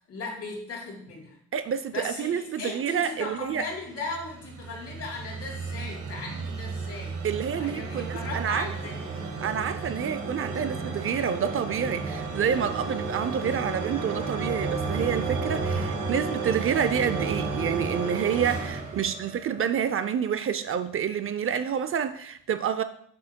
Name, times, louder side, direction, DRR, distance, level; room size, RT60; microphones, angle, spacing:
voice 1, 0.1-1.3 1.9-7.2 7.5-9.1, left 3 dB, 55° left, 3.2 m, -37 dB
voice 2, 1.5-3.6 7.2-8.7 9.4-22.8, right 8 dB, 45° right, 0.5 m, -28 dB
sound 1, 3.7-19.9, right 4 dB, 80° right, 1.5 m, -32 dB
8.3 x 7.6 x 2.2 m
cardioid pair, 90°, 30 cm